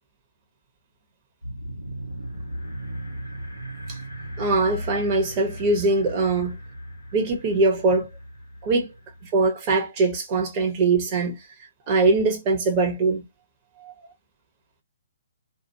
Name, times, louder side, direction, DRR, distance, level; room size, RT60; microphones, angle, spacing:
sound 1, 1.4-9.5, right 1 dB, 85° right, 1.1 m, -37 dB
voice 1, 4.4-6.6 7.1-8.1 8.6-8.9 9.3-11.4 11.9-13.2 13.8-14.1, right 3 dB, 30° right, 0.9 m, -22 dB
2.3 x 2.1 x 2.9 m
figure-of-eight pair, 130°, 0 cm